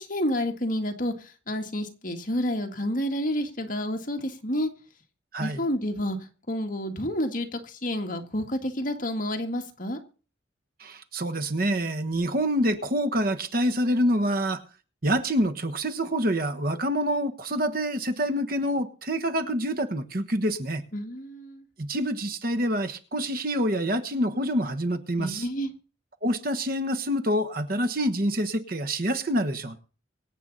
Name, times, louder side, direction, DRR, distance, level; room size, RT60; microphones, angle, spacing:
voice 1, 0.0-4.7 5.4-6.2 6.5-10.0 20.9-21.6 25.2-25.7, equal, 45° left, 1.9 m, -29 dB
voice 2, 10.8-14.6 15.0-20.8 21.8-25.5 26.2-29.8, equal, 50° right, 1.3 m, -26 dB
24.0 x 8.3 x 4.1 m
head